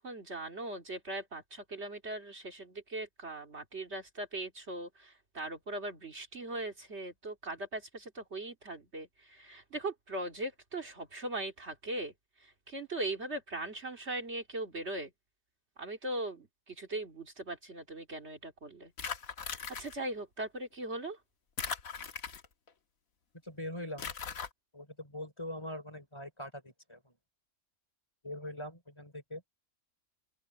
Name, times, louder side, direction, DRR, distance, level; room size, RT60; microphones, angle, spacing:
voice 1, 0.0-12.1 12.4-15.1 15.8-18.9 19.4-21.2, right 2 dB, 50° right, 2.6 m, -40 dB
sound 1, 19.0-19.9 21.6-22.7 24.0-24.5, left 6 dB, 80° left, 1.8 m, -39 dB
voice 2, 23.4-24.1 24.7-27.1 28.2-29.4, left 1 dB, 20° left, 3.5 m, -42 dB
open air
omnidirectional pair, 1.4 m